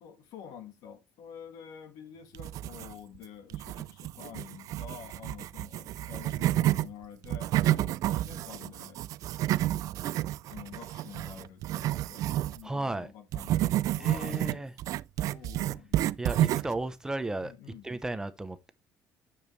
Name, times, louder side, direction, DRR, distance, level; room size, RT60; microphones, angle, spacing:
voice 1, 0.0-9.0 10.5-12.3 12.5-14.7 15.3-16.4 17.4-17.9, left 8 dB, 80° left, 1.7 m, -48 dB
sound 1, 2.3-3.2 3.5-6.9 7.2-12.6 13.3-16.8, right 14 dB, 60° right, 0.4 m, -30 dB
voice 2, 12.6-13.1 14.0-14.7 16.2-17.5 17.8-18.7, right 2 dB, 10° right, 0.7 m, -34 dB
9.4 x 7.1 x 3.2 m
cardioid pair, 155°, 6 cm